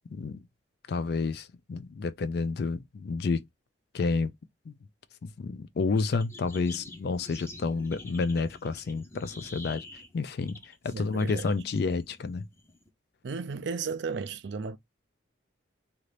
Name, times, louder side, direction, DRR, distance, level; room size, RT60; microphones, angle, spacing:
voice 1, 0.1-0.4 0.9-3.4 3.9-4.3 4.7-4.8 5.2-9.8 10.1-10.6 10.8-12.5, left 4 dB, 55° left, 0.3 m, -30 dB
sound 1, 6.0-12.9, left 2 dB, 15° left, 0.6 m, -48 dB
voice 2, 10.9-11.5 13.2-14.8, right 5 dB, 65° right, 0.4 m, -34 dB
2.8 x 2.5 x 3.2 m
head